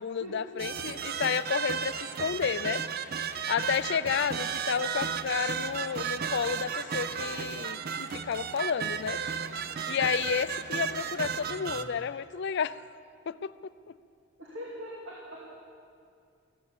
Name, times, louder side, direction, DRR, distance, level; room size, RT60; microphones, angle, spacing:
voice 1, 0.0-2.8 3.5-9.2 9.9-12.8 13.3-13.5, left 7 dB, 55° left, 16 dB, 0.4 m, -31 dB
sound 1, 0.6-11.8, right 7 dB, 45° right, 0.6 m, -34 dB
voice 2, 11.4-11.9 14.4-15.5, equal, 70° right, -4 dB, 2.4 m, -42 dB
15.0 x 12.5 x 7.3 m, 2.4 s
head